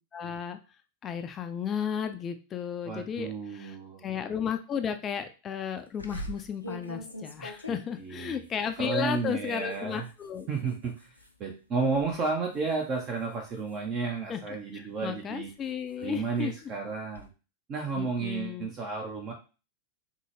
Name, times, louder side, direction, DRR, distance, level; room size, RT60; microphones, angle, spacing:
voice 1, 0.1-0.6 1.0-3.8 4.0-10.5 14.3-16.5 18.0-18.7, left 8 dB, 25° left, 8 dB, 0.3 m, -34 dB
voice 2, 2.8-4.0 7.7-8.5 8.8-10.1 10.5-15.5 16.0-17.3 17.7-19.3, right 4 dB, 30° right, 2 dB, 0.6 m, -32 dB
sound 1, 6.0-11.4 11.7-12.1 12.5-14.5 15.1-17.3, equal, 90° left, 0.4 m, -45 dB
3.7 x 2.1 x 3.2 m, 0.33 s
figure-of-eight pair, 90°, 0 cm